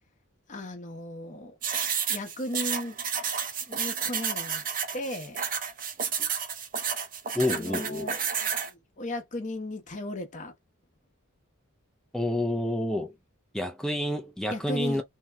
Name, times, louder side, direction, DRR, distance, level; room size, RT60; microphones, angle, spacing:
voice 1, 0.5-1.6 2.1-3.0 3.7-4.6 4.9-5.4 7.4-10.5 14.5-15.0, left 1 dB, 35° left, 0.8 m, -36 dB
sound 1, 1.6-8.7, right 7 dB, 40° right, 0.7 m, -31 dB
voice 2, 7.3-8.1 12.1-13.1 13.5-15.0, left 1 dB, 5° left, 0.4 m, -29 dB
2.8 x 2.1 x 3.4 m
head